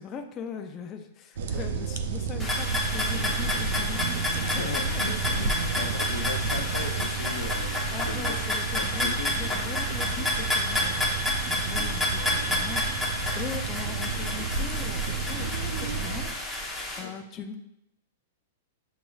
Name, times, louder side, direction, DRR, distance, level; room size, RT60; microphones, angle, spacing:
voice 1, 0.0-4.8 5.8-5.9 7.9-17.6, left 7 dB, 25° left, 4 dB, 0.4 m, -40 dB
sound 1, 1.4-16.3, right 5 dB, 65° right, 0.5 m, -31 dB
sound 2, 2.4-17.0, left 1 dB, ahead, 0.9 m, -30 dB
voice 2, 4.4-7.8 8.3-8.4 8.8-9.3 12.0-12.1 17.0-17.1, left 5 dB, 90° left, 4 dB, 0.7 m, -37 dB
7.5 x 3.0 x 2.3 m, 0.81 s
hypercardioid pair, 145°, 0 cm